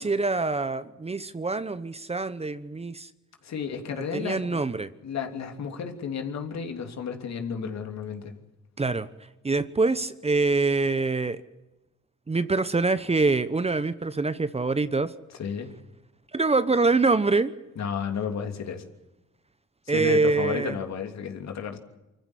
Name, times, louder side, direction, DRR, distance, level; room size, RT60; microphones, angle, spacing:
voice 1, 0.0-3.1 4.1-4.9 8.8-9.1 9.4-11.4 12.3-15.1 16.3-17.5 19.9-20.8, right 3 dB, 20° right, 13 dB, 0.9 m, -25 dB
voice 2, 3.4-4.6 5.0-8.4 15.4-15.7 17.8-18.8 19.9-21.8, left 6 dB, 60° left, 4 dB, 3.1 m, -32 dB
25.0 x 15.0 x 9.9 m, 1.0 s
cardioid pair, 90°, 30 cm